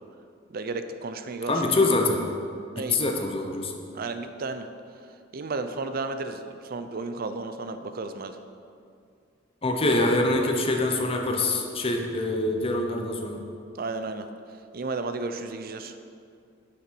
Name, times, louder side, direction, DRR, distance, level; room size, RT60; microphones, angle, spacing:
voice 1, 0.5-1.6 2.8-3.0 3.9-4.7 5.3-8.4 13.7-14.3 14.7-15.9, right 3 dB, 50° right, 9 dB, 0.5 m, -33 dB
voice 2, 1.5-2.2 2.9-3.7 9.6-13.4, left 2 dB, 30° left, 2 dB, 0.8 m, -24 dB
9.9 x 6.1 x 4.5 m, 2.4 s
head